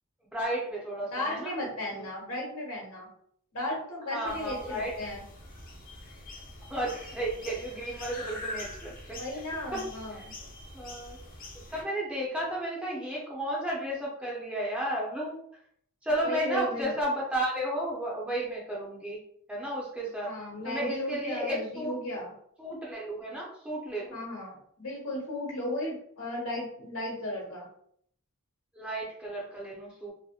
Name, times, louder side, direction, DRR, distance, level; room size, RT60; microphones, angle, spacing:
voice 1, 0.3-1.6 4.1-4.9 6.7-9.2 9.7-9.8 10.1-10.2 10.7-11.2 11.7-15.4 16.0-19.2 19.5-20.3 20.6-21.9 22.6-24.2 28.7-30.1, right 1 dB, 5° right, -5 dB, 0.5 m, -33 dB
voice 2, 1.1-3.1 3.5-5.2 9.2-10.2 16.2-16.9 20.2-22.3 24.1-27.7, left 1 dB, 75° left, -2 dB, 1.0 m, -35 dB
sound 1, 4.2-11.8, left 2 dB, 40° left, 0.6 m, -44 dB
2.7 x 2.1 x 2.3 m, 0.65 s
head